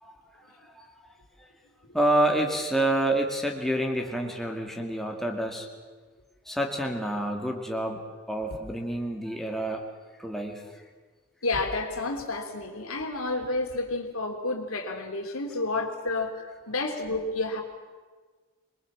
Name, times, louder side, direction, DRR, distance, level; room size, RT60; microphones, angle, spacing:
voice 1, 0.0-1.5 1.9-5.7 6.5-9.8 10.2-10.7, right 1 dB, ahead, 1 dB, 2.3 m, -28 dB
voice 2, 11.4-17.6, left 2 dB, 75° left, 4 dB, 3.2 m, -30 dB
24.0 x 22.0 x 7.5 m, 1.4 s
head